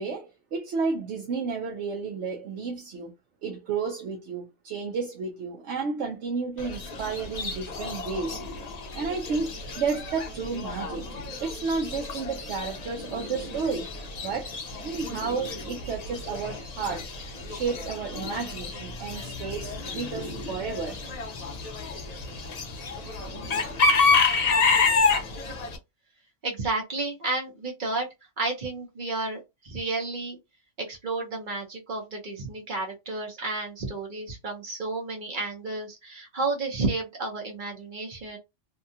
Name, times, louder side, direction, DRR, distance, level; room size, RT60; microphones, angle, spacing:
voice 1, 0.0-3.1 3.4-8.4 8.9-11.0 11.4-13.9 14.2-14.5 14.8-17.1 17.5-21.0, right 5 dB, 70° right, 0.9 m, -32 dB
Chicken rooster / Bird, 6.6-25.8, left 4 dB, 45° left, 0.5 m, -29 dB
voice 2, 26.4-28.1 28.4-30.4 30.9-38.4, right 3 dB, 45° right, 0.9 m, -31 dB
2.7 x 2.3 x 2.7 m
omnidirectional pair, 1.3 m